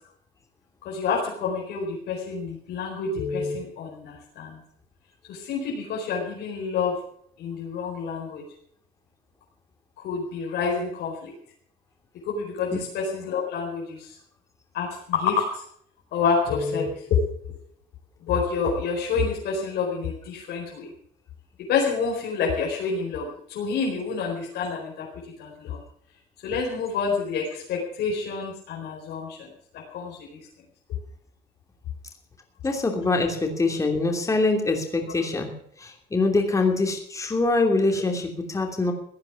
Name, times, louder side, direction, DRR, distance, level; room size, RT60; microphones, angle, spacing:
voice 1, 0.8-4.6 5.3-7.0 7.4-8.4 10.0-11.3 12.3-14.1 14.7-15.6 16.1-17.2 18.3-20.9 21.7-25.1 25.4-25.8 26.4-29.5 29.9-30.4, left 5 dB, 75° left, -2 dB, 4.6 m, -28 dB
voice 2, 32.6-35.5 35.8-38.9, left 3 dB, 20° left, 3 dB, 3.0 m, -24 dB
16.0 x 9.7 x 7.1 m, 0.67 s
cardioid pair, 110°, 17 cm